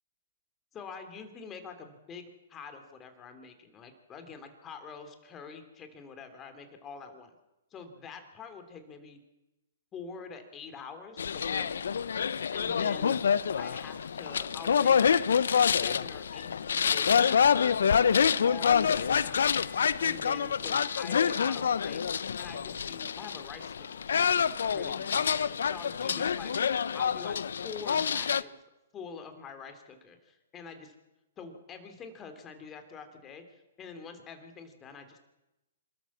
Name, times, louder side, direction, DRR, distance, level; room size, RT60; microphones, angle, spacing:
voice 1, 0.7-2.2 2.5-7.3 7.7-9.2 9.9-11.7 12.5-13.2 13.6-15.2 15.8-17.9 18.2-22.0 22.4-26.5 26.9-27.4 27.6-28.6 28.9-30.9 31.4-35.2, left 5 dB, 20° left, 7 dB, 3.2 m, -46 dB
sound 1, 11.2-28.4, left 7 dB, 70° left, 0.6 m, -27 dB
Wind instrument woodwind instrument, 16.3-22.3, right 2 dB, 40° right, 4.1 m, -61 dB
26.5 x 13.0 x 7.4 m, 0.97 s
hypercardioid pair, 125°, 0 cm